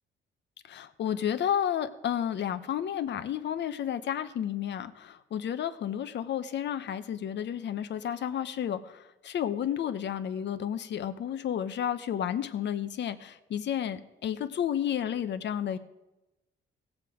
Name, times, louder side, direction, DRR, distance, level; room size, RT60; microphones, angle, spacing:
voice 1, 0.6-15.8, left 9 dB, 65° left, 11 dB, 0.8 m, -31 dB
17.0 x 7.5 x 4.9 m, 1.0 s
cardioid pair, 90°, 20 cm